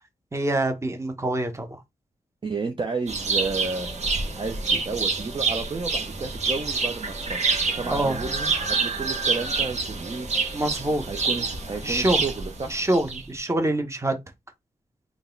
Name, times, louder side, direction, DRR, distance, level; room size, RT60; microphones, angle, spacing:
voice 1, 0.3-1.7 7.9-8.2 10.5-11.0 11.8-12.2 12.7-14.1, right 1 dB, 20° right, 0.9 m, -25 dB
voice 2, 2.4-4.1 4.3-7.4 7.7-10.3 11.1-12.8, right 4 dB, 35° right, 0.6 m, -32 dB
sound 1, 3.1-13.5, right 4 dB, 55° right, 1.0 m, -27 dB
3.8 x 2.3 x 3.8 m
cardioid pair, 70°, 14 cm